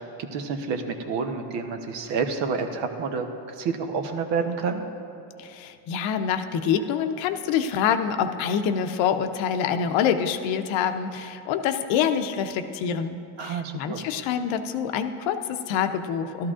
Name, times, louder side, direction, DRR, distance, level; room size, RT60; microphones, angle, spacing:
voice 1, 0.0-4.8 13.4-14.1, right 5 dB, 75° right, 6 dB, 1.0 m, -29 dB
voice 2, 5.4-16.5, left 8 dB, 85° left, 8 dB, 0.7 m, -26 dB
13.5 x 12.5 x 2.5 m, 2.6 s
cardioid pair, 115°, 44 cm